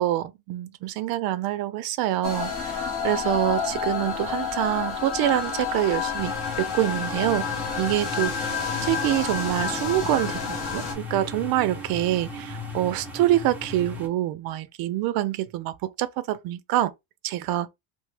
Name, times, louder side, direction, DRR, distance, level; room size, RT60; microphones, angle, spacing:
voice 1, 0.0-7.5 7.8-16.9 17.2-17.7, right 14 dB, 60° right, 0.5 m, -26 dB
sound 1, 2.2-10.9, left 6 dB, 40° left, 0.8 m, -29 dB
sound 2, 6.2-14.1, left 2 dB, 5° right, 0.5 m, -37 dB
2.8 x 2.0 x 3.2 m
cardioid pair, 175°, 41 cm